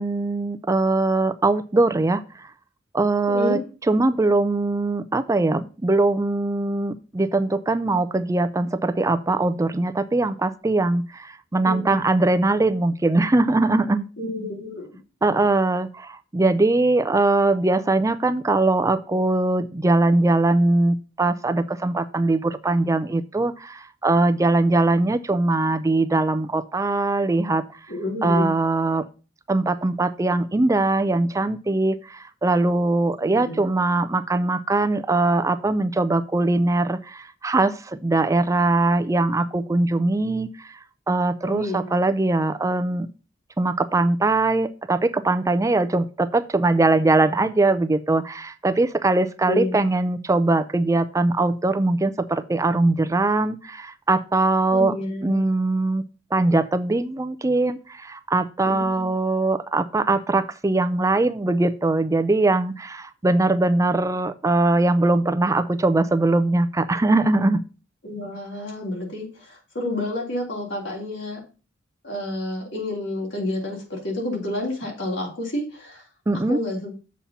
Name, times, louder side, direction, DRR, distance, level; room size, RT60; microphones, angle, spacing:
voice 1, 0.0-2.5 2.9-3.6 3.9-14.1 15.2-27.6 28.2-29.0 29.5-40.8 41.1-43.1 43.6-54.9 55.2-56.0 56.3-67.6 76.3-76.6, right 2 dB, 15° right, 10 dB, 0.4 m, -21 dB
voice 2, 3.3-3.6 11.6-12.0 14.2-14.9 27.9-28.6 33.2-33.6 41.5-42.1 49.5-49.8 54.7-55.5 58.6-59.1 68.0-71.4 72.0-76.0 76.3-76.9, left 1 dB, 75° left, -1 dB, 3.5 m, -29 dB
7.3 x 4.2 x 6.9 m, 0.34 s
head